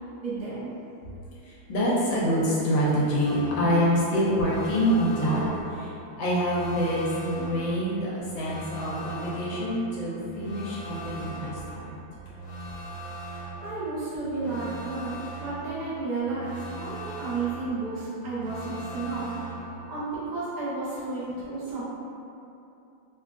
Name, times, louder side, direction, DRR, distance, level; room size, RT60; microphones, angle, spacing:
voice 1, 0.2-0.7 13.6-19.3 19.9-21.8, right 3 dB, 70° right, -11 dB, 0.4 m, -32 dB
voice 2, 1.4-11.9, equal, 75° left, -6 dB, 1.2 m, -26 dB
sound 1, 3.2-19.9, right 2 dB, 5° right, 0.4 m, -40 dB
3.6 x 2.4 x 2.4 m, 2.7 s
omnidirectional pair, 2.2 m